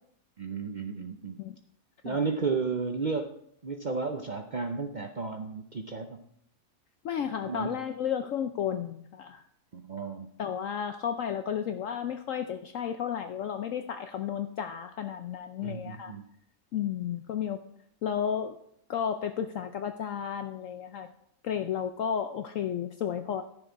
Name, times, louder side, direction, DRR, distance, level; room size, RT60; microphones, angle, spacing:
voice 1, 0.4-1.4 2.0-3.4 3.6-6.2 7.4-7.8 9.7-10.3 15.6-16.2, right 4 dB, 55° right, 5 dB, 0.5 m, -33 dB
voice 2, 7.0-9.4 10.4-16.2 16.7-17.6 18.0-18.6 18.9-21.1 21.4-23.4, left 8 dB, 65° left, 8 dB, 0.9 m, -32 dB
13.0 x 6.9 x 4.6 m, 0.71 s
omnidirectional pair, 1.6 m